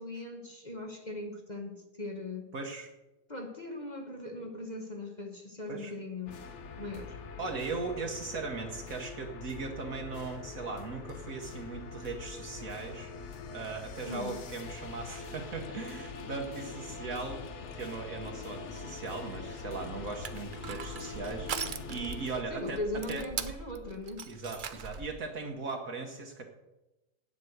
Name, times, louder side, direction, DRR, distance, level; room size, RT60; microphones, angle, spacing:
voice 1, 0.0-2.5 3.3-6.4 6.8-7.2 14.1-14.4 22.5-24.2, left 2 dB, 30° left, 3 dB, 1.1 m, -39 dB
voice 2, 2.5-2.9 5.7-5.9 7.4-22.8 23.1-23.3 24.3-26.4, right 4 dB, 60° right, 2 dB, 1.5 m, -39 dB
sound 1, 6.3-22.4, left 5 dB, 50° left, 1.0 m, -44 dB
sound 2, 15.6-22.2, left 6 dB, 70° left, 1.5 m, -49 dB
Crushing, 19.9-25.2, right 6 dB, 75° right, 0.4 m, -40 dB
9.3 x 7.7 x 7.9 m, 1.0 s
omnidirectional pair, 1.8 m